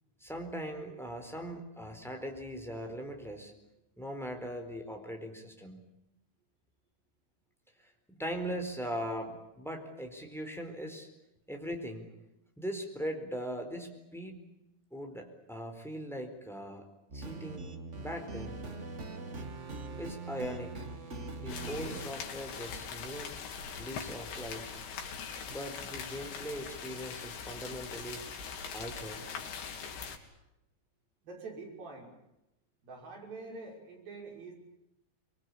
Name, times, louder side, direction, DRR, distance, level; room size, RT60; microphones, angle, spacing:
voice 1, 0.2-3.5 4.0-5.8 7.8-11.1 11.5-12.1 12.6-14.4 14.9-16.9 17.1-17.7 18.0-18.6 20.0-20.8 21.4-23.4 23.8-24.8 25.5-28.3 28.7-29.3, equal, ahead, 4 dB, 3.7 m, -40 dB
sound 1, 17.1-22.1, right 3 dB, 30° right, 1.2 m, -41 dB
sound 2, 21.5-30.2, left 6 dB, 90° left, 4.5 m, -42 dB
voice 2, 31.2-32.1 32.8-34.5, right 3 dB, 65° right, 0 dB, 7.6 m, -45 dB
25.0 x 23.5 x 8.7 m, 0.89 s
omnidirectional pair, 4.5 m